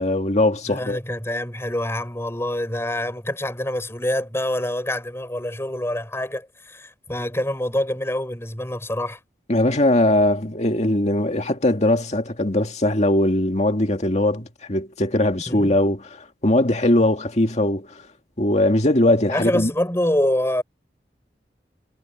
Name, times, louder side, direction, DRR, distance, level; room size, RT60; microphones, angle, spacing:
voice 1, 0.0-1.0 9.5-18.0 18.4-19.7, left 1 dB, 40° left, 2.2 m, -20 dB
voice 2, 0.7-9.2 15.5-15.7 19.3-20.6, left 1 dB, 15° left, 4.2 m, -26 dB
head